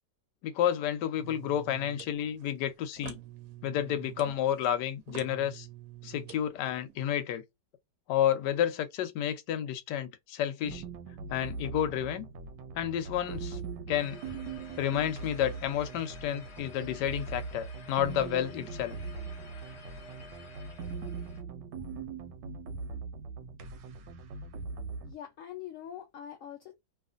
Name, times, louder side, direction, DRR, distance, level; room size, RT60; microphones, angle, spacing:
voice 1, 0.4-3.2 3.6-5.7 6.0-7.4 8.1-10.8 11.3-12.3 12.8-13.6 13.9-14.2 14.8-19.0, left 10 dB, 75° left, 1.2 m, -30 dB
sound 1, 1.2-7.0, right 12 dB, 65° right, 0.9 m, -48 dB
sound 2, 10.7-25.1, right 4 dB, 90° right, 1.3 m, -41 dB
sound 3, 13.9-21.4, left 2 dB, 55° left, 0.8 m, -52 dB
voice 2, 25.0-26.8, left 10 dB, 90° left, 0.7 m, -44 dB
2.8 x 2.4 x 2.4 m
omnidirectional pair, 1.9 m